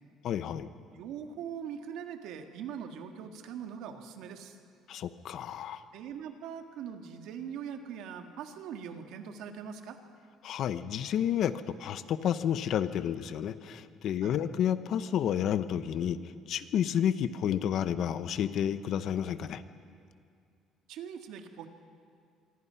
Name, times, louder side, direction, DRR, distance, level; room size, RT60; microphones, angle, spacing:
voice 1, 0.2-0.7 4.9-5.8 10.4-11.5 11.8-16.2 16.5-19.6, left 9 dB, 50° left, 12 dB, 0.9 m, -30 dB
voice 2, 0.9-4.6 5.9-10.0 14.2-14.4 20.9-21.7, right 8 dB, 65° right, 5 dB, 1.9 m, -41 dB
24.5 x 24.5 x 5.8 m, 2.3 s
cardioid pair, 165°, 0 cm